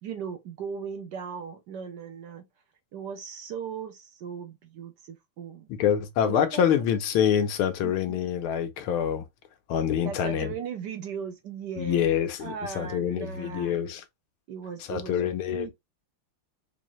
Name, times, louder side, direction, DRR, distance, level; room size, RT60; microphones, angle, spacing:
voice 1, 0.0-2.4 2.9-5.7 6.3-6.6 7.8-8.2 10.0-13.8 14.5-15.7, right 6 dB, 70° right, 1.1 m, -38 dB
voice 2, 5.7-9.2 9.7-10.5 11.8-14.0 14.9-15.7, left 9 dB, 85° left, 1.6 m, -26 dB
4.7 x 2.6 x 3.0 m
omnidirectional pair, 2.3 m